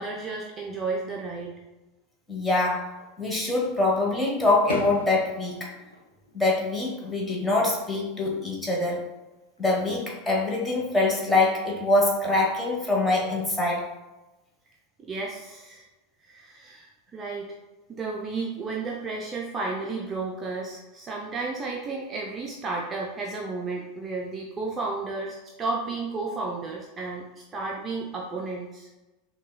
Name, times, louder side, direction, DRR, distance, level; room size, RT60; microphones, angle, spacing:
voice 1, 0.0-1.5 15.0-15.9 16.2-17.6 17.9-28.9, right 3 dB, 25° right, -1 dB, 0.4 m, -33 dB
voice 2, 2.3-5.7 6.3-9.0 9.6-13.9, left 2 dB, 10° left, -3 dB, 1.0 m, -24 dB
Fireworks, 2.9-3.6 4.0-7.2 7.5-8.0 9.6-10.4, left 2 dB, 85° left, 0.5 m, -40 dB
5.9 x 2.2 x 2.2 m, 1.1 s
figure-of-eight pair, 80°, 0 cm